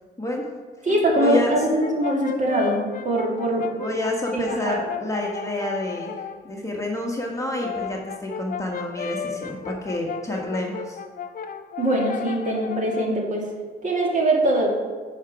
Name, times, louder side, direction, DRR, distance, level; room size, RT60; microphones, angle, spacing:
voice 1, 0.2-0.5 1.1-1.6 3.8-11.0, left 1 dB, 15° left, -1 dB, 1.3 m, -28 dB
Brass instrument, 0.8-6.4 7.4-13.2, left 8 dB, 45° left, 0.5 m, -34 dB
voice 2, 0.8-3.6 4.5-4.8 11.8-13.4 13.8-14.7, right 1 dB, 40° right, -1 dB, 2.3 m, -22 dB
9.1 x 5.2 x 4.8 m, 1.6 s
cardioid pair, 90°, 20 cm